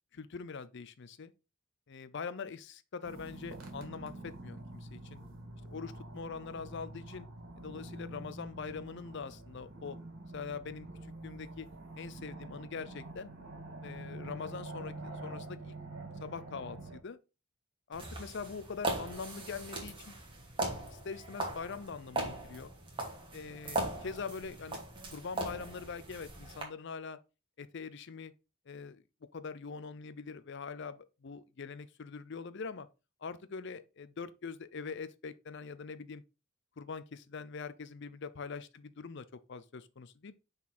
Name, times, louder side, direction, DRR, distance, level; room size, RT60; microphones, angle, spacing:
voice 1, 0.1-1.3 1.9-5.2 5.7-7.3 7.6-10.0 10.3-11.7 12.0-13.3 13.8-15.8 16.2-17.2 17.9-20.2 20.9-22.7 23.3-24.8 25.1-27.2 27.6-28.3 28.7-29.0 29.3-32.9 33.2-36.2 36.8-40.3, left 5 dB, 55° left, 0.5 m, -43 dB
sound 1, 3.0-17.0, right 2 dB, 70° right, 1.9 m, -46 dB
sound 2, 17.9-26.6, right 2 dB, 25° right, 1.6 m, -39 dB
5.9 x 4.1 x 4.2 m
head